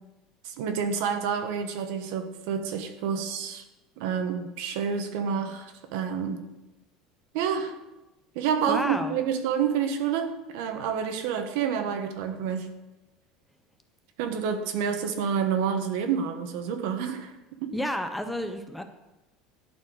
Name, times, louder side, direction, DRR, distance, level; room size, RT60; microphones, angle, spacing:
voice 1, 0.4-3.6 4.0-6.4 7.3-7.7 8.3-12.7 14.2-17.3 17.6-17.7, right 7 dB, 70° right, 7 dB, 1.2 m, -28 dB
voice 2, 8.7-9.2 17.7-18.8, equal, 5° left, 7 dB, 0.5 m, -30 dB
11.5 x 4.5 x 6.3 m, 1.0 s
cardioid pair, 170°, 0 cm